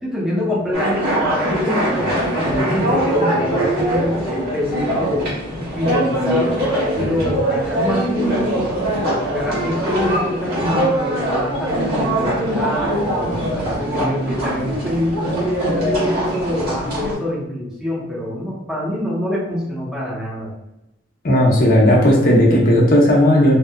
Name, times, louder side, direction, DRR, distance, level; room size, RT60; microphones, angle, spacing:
voice 1, 0.0-5.3 5.8-8.9 9.2-15.4 15.8-20.5, left 1 dB, 5° right, -7 dB, 0.8 m, -25 dB
sound 1, 0.7-17.1, right 1 dB, 60° right, 1.2 m, -22 dB
voice 2, 21.2-23.6, equal, 50° left, -2 dB, 0.7 m, -14 dB
2.8 x 2.2 x 2.3 m, 0.90 s
head